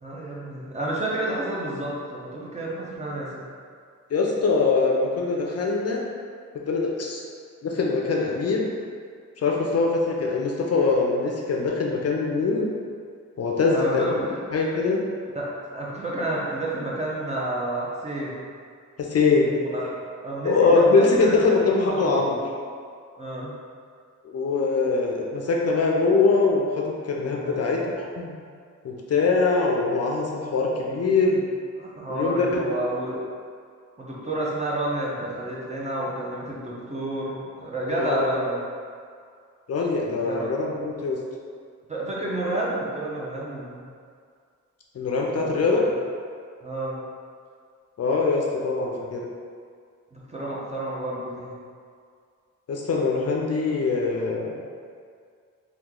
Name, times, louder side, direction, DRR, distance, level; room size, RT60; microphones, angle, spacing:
voice 1, 0.0-3.4 13.7-14.4 15.3-15.5 15.7-18.4 19.6-19.9 20.2-22.1 23.2-23.5 27.3-27.8 31.8-33.2 34.0-38.6 40.2-40.5 41.9-43.9 45.4-45.5 46.6-47.0 50.1-51.5, right 1 dB, 20° right, -5 dB, 0.5 m, -30 dB
voice 2, 4.1-6.0 6.7-7.2 7.6-8.7 9.4-12.7 13.4-14.0 14.5-15.0 19.0-19.5 20.4-22.4 24.2-28.3 28.8-31.5 32.1-32.6 37.9-38.3 39.7-41.2 44.9-45.8 48.0-49.3 52.7-54.5, left 4 dB, 55° left, -1 dB, 0.4 m, -23 dB
2.9 x 2.3 x 3.6 m, 2.2 s
wide cardioid pair, 140°, 31 cm